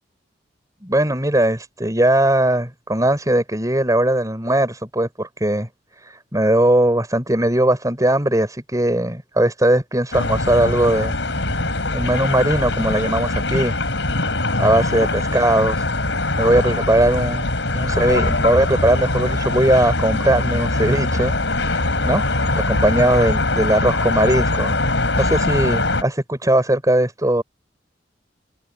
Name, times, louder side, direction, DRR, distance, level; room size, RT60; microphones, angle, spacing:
voice 1, 0.8-5.7 6.0-11.1 11.9-13.8 14.6-15.8 16.4-17.5 17.7-21.3 21.7-22.2 22.5-24.8 25.2-27.4, right 1 dB, 20° right, 6.1 m, -19 dB
sound 1, 10.1-26.0, left 2 dB, 80° left, 5.5 m, -22 dB
head